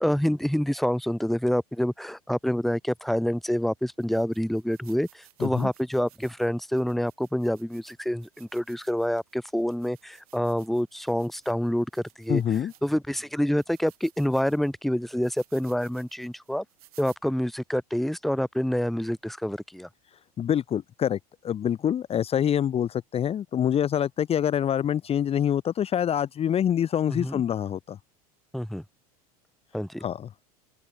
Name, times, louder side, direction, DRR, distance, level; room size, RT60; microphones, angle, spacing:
voice 1, 0.0-12.4 12.8-16.6 17.0-19.9 27.1-27.4 28.5-28.8 29.7-30.0, equal, ahead, 2.0 m, -27 dB
sound 1, 2.9-3.0 3.6-3.7 4.0-13.1 13.6-17.2, right 15 dB, 70° right, 7.8 m, -58 dB
voice 2, 12.3-12.7 20.4-21.2 21.4-28.0 30.0-30.3, left 9 dB, 30° left, 1.2 m, -26 dB
open air
hypercardioid pair, 80°, 19 cm